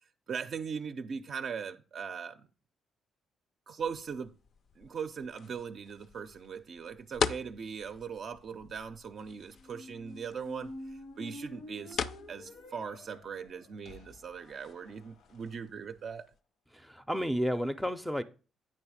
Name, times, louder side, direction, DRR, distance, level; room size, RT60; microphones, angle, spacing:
voice 1, 0.0-2.5 3.7-4.3 4.8-12.0 12.3-16.3, right 6 dB, 55° right, 0.4 m, -40 dB
sound 1, 3.8-16.4, left 6 dB, 60° left, 0.4 m, -42 dB
Squeak, 9.6-15.5, left 1 dB, 80° left, 0.8 m, -49 dB
voice 2, 16.7-18.2, equal, ahead, 0.4 m, -32 dB
8.5 x 3.2 x 6.1 m
cardioid pair, 90°, 0 cm